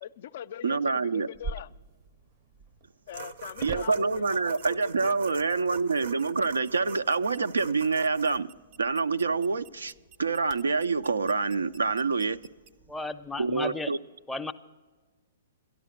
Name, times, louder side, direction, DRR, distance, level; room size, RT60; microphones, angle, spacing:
voice 1, 0.0-0.8 1.1-1.7 3.1-4.2 4.5-5.2, left 10 dB, 60° left, 0.3 m, -41 dB
voice 2, 0.6-1.3 3.6-8.5 8.8-9.9 10.2-12.4 13.4-14.0, right 4 dB, 90° right, 0.4 m, -26 dB
sound 1, 1.3-13.6, right 4 dB, 40° right, 0.6 m, -47 dB
sound 2, 3.1-8.4, right 5 dB, 75° right, 0.8 m, -44 dB
voice 3, 12.9-13.9 14.3-14.5, left 3 dB, 5° left, 0.5 m, -34 dB
12.5 x 11.0 x 6.4 m
hypercardioid pair, 125°, 0 cm